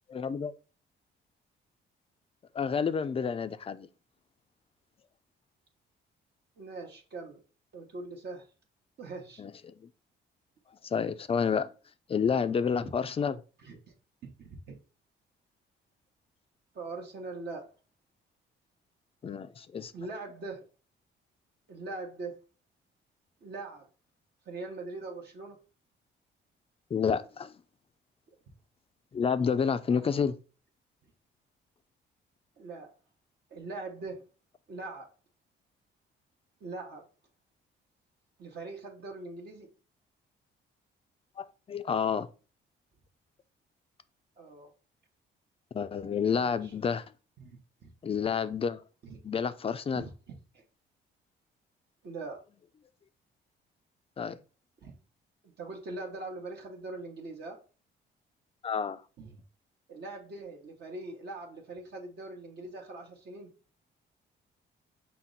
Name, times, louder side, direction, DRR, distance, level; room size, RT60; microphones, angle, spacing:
voice 1, 0.1-0.5 2.5-3.9 9.4-9.5 10.8-11.7 12.1-13.4 19.2-19.9 26.9-27.5 29.1-30.4 41.4-42.3 45.7-47.0 48.0-48.8 49.2-50.1 54.2-54.4 58.6-59.0, left 6 dB, 30° left, 0.4 m, -29 dB
voice 2, 6.6-7.4 7.7-8.5 9.0-9.4 12.8-12.9 13.6-13.8 14.4-14.8 16.7-17.7 19.9-20.6 21.7-22.4 23.4-23.9 24.5-25.6 29.9-30.2 32.6-32.9 33.5-34.2 34.7-35.1 36.6-37.0 38.4-39.7 44.4-44.7 46.3-46.7 47.4-47.9 49.0-49.2 49.9-50.6 52.0-52.4 54.8-54.9 55.4-57.6 59.2-59.4 59.9-63.5, right 3 dB, 55° right, 1.0 m, -42 dB
5.8 x 2.1 x 3.8 m
cardioid pair, 90°, 20 cm